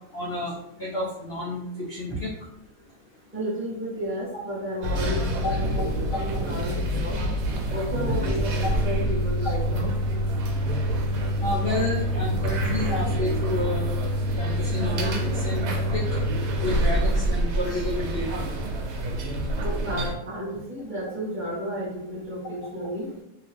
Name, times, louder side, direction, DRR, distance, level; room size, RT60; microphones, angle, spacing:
voice 1, 0.1-0.5 0.8-1.6 1.9-2.3 5.4-5.8 9.4-9.5 11.4-13.8 14.4-15.1 15.4-16.0 16.6-18.3, left 2 dB, 85° left, -4 dB, 0.5 m, -30 dB
voice 2, 3.3-7.2 7.7-9.9 19.3-23.1, equal, 10° right, -8 dB, 0.6 m, -32 dB
sound 1, 4.8-20.1, equal, 80° right, 1.2 m, -26 dB
2.8 x 2.3 x 3.2 m, 0.88 s
omnidirectional pair, 1.8 m